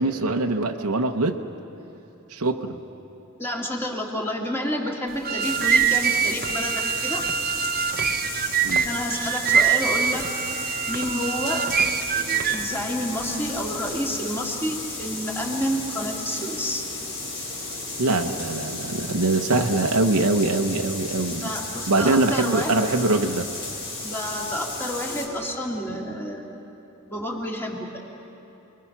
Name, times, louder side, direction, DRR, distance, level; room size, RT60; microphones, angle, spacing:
voice 1, 0.0-1.4 2.3-2.8 8.6-8.9 18.0-21.5 21.9-23.5, right 2 dB, 75° right, 4 dB, 0.9 m, -23 dB
voice 2, 3.4-7.2 8.8-10.3 10.9-11.7 12.5-16.8 21.3-22.9 24.0-26.5 27.1-28.0, equal, 10° left, -1 dB, 2.3 m, -29 dB
sound 1, 5.1-12.7, right 7 dB, 45° right, 0.7 m, -24 dB
sound 2, 5.4-25.3, left 3 dB, 75° left, 4.8 m, -34 dB
28.5 x 22.0 x 5.9 m, 2.9 s
head